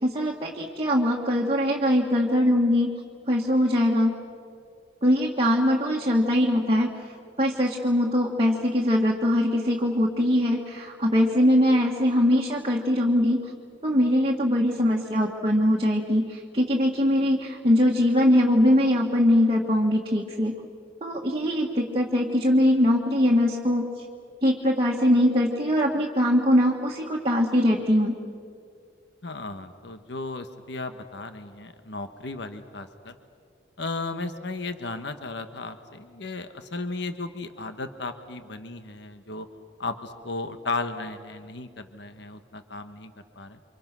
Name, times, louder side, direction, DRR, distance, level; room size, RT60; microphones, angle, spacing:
voice 1, 0.0-2.9 3.3-4.2 5.0-6.9 7.4-13.5 13.8-20.6 21.0-23.9 24.4-28.2, equal, 30° right, -2 dB, 1.7 m, -22 dB
voice 2, 29.2-33.1 33.8-39.5 39.8-43.6, left 3 dB, 65° left, 9 dB, 1.2 m, -35 dB
29.5 x 25.0 x 6.2 m, 2.3 s
head